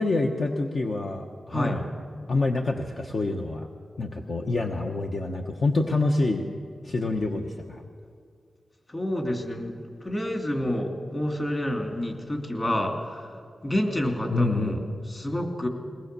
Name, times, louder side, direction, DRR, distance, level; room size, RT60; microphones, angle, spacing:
voice 1, 0.0-1.8 2.3-3.7 4.0-6.5 6.8-7.8 14.3-14.8, left 2 dB, 50° left, 2 dB, 1.1 m, -27 dB
voice 2, 1.5-1.8 8.9-15.7, left 1 dB, 25° left, 2 dB, 2.7 m, -29 dB
21.5 x 19.0 x 6.8 m, 2.2 s
wide cardioid pair, 130°, 0 cm